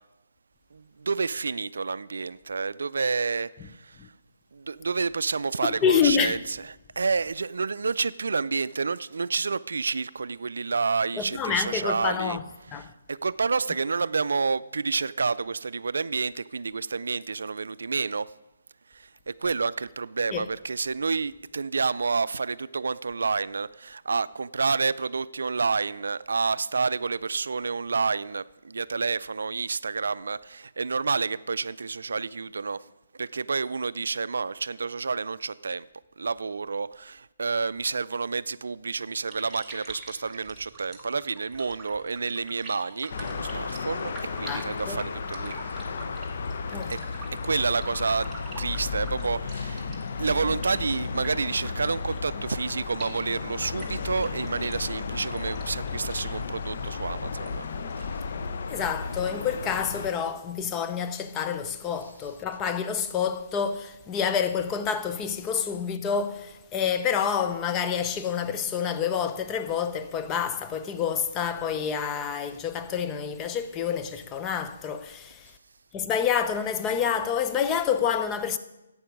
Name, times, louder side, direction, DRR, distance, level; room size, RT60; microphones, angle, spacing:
voice 1, 0.7-4.0 4.5-18.3 18.9-32.8 33.2-35.9 36.2-45.5 46.9-47.0 47.4-48.3 48.6-57.7 58.0-58.2 62.2-62.3, right 4 dB, 75° right, 0.3 m, -29 dB
voice 2, 5.6-6.4 11.2-12.4 12.7-12.9 20.3-20.5 44.4-45.0 46.7-46.9 50.0-50.1 58.7-75.5 75.9-78.6, left 7 dB, 15° left, 0.5 m, -28 dB
sound 1, 39.1-58.2, right 3 dB, 10° right, 1.5 m, -46 dB
sound 2, 43.1-60.1, left 4 dB, 55° left, 0.8 m, -34 dB
11.5 x 8.5 x 5.2 m
hypercardioid pair, 155°, 0 cm